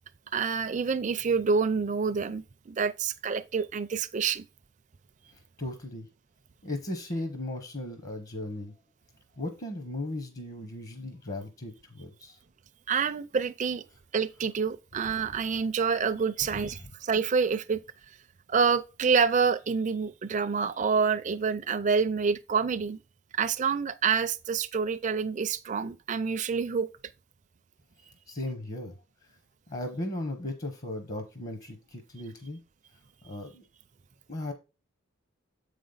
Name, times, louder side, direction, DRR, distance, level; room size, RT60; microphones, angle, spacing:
voice 1, 0.3-4.4 12.9-13.8 14.1-17.8 18.5-23.0 23.3-26.9, right 5 dB, 35° right, 0.4 m, -27 dB
voice 2, 5.3-6.1 6.6-8.7 9.3-12.4 16.4-16.9 28.3-29.0 29.2-29.4 29.7-32.6 33.2-33.6 34.3-34.5, left 1 dB, 40° left, 0.9 m, -37 dB
7.4 x 5.1 x 3.9 m
head